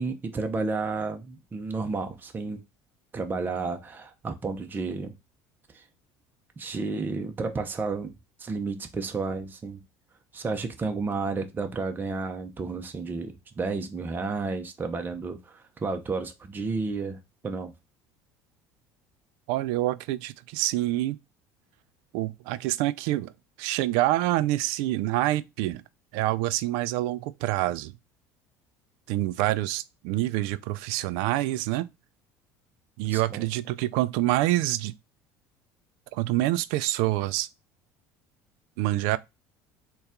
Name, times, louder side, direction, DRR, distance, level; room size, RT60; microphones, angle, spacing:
voice 1, 0.0-2.6 3.1-5.1 5.7-5.8 6.6-9.8 10.3-17.7 33.1-33.4, right 4 dB, 25° right, 0.6 m, -32 dB
voice 2, 19.5-21.2 22.1-23.3 23.6-25.8 26.1-27.9 29.1-31.9 33.0-34.9 36.1-37.5 38.8-39.2, right 16 dB, 75° right, 0.3 m, -26 dB
4.0 x 2.3 x 3.6 m
supercardioid pair, 85°, 8 cm